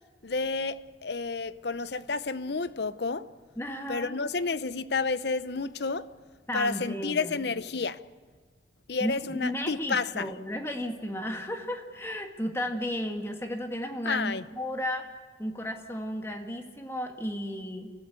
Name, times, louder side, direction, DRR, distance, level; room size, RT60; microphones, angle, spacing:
voice 1, 0.2-3.3 3.9-6.1 6.5-8.0 8.9-10.3 14.0-14.4, left 4 dB, 65° left, 0.8 m, -30 dB
voice 2, 3.6-4.1 6.5-7.4 9.0-15.1 15.4-17.9, equal, 15° left, 1.9 m, -34 dB
29.0 x 16.0 x 8.4 m
head